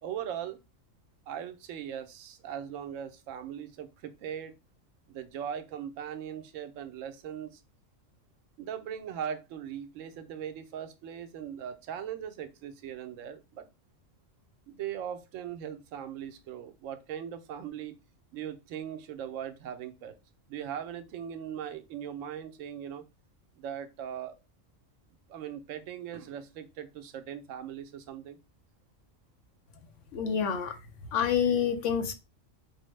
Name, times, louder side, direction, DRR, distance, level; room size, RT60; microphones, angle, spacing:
voice 1, 0.0-0.6 1.3-4.6 5.1-7.6 8.6-13.7 14.7-17.9 18.3-20.2 20.5-23.0 23.6-24.3 25.3-28.4, right 9 dB, 75° right, 0.9 m, -39 dB
voice 2, 30.1-30.8 31.1-32.1, left 7 dB, 70° left, 0.9 m, -27 dB
4.6 x 2.0 x 3.1 m
omnidirectional pair, 1.4 m